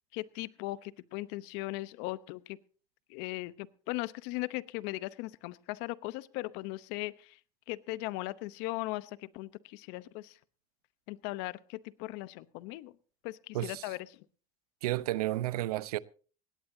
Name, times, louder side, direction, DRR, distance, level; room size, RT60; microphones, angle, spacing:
voice 1, 0.1-2.6 3.1-7.4 7.7-10.4 11.1-12.9 13.2-14.2, left 19 dB, 70° left, 0.9 m, -38 dB
voice 2, 14.8-16.0, right 16 dB, 90° right, 0.7 m, -32 dB
18.5 x 17.5 x 2.7 m
supercardioid pair, 90°, 19 cm